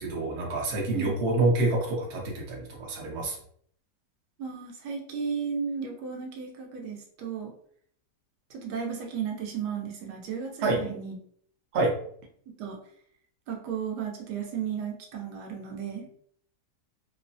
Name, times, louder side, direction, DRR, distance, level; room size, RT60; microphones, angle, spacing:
voice 1, 0.0-3.4 10.6-10.8 11.7-11.9, right 2 dB, 55° right, -2 dB, 0.9 m, -27 dB
voice 2, 4.4-7.5 8.5-11.2 12.6-12.8 13.5-16.1, right 7 dB, 80° right, 1 dB, 1.2 m, -34 dB
3.0 x 2.0 x 2.6 m, 0.63 s
omnidirectional pair, 1.8 m